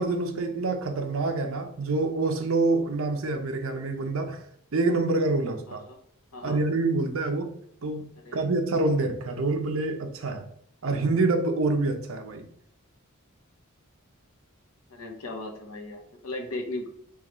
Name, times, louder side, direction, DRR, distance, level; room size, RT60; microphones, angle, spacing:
voice 1, 0.0-4.4 4.7-5.8 6.4-7.5 7.8-10.5 10.8-12.5, right 3 dB, 65° right, 0.6 m, -26 dB
voice 2, 14.9-16.9, left 2 dB, 80° left, 0.8 m, -37 dB
4.9 x 2.3 x 3.0 m
head